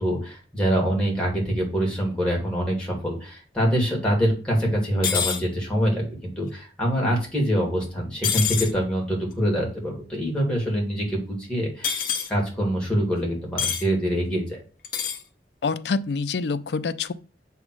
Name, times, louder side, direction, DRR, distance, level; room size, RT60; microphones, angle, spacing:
voice 1, 0.0-14.6, equal, 5° left, 2.3 m, -25 dB
sound 1, 5.0-5.4 8.2-8.7 11.8-12.3 13.6-13.8 14.8-15.2, left 8 dB, 50° left, 1.0 m, -25 dB
voice 2, 15.6-17.1, left 4 dB, 75° left, 0.5 m, -26 dB
7.2 x 3.5 x 6.2 m
head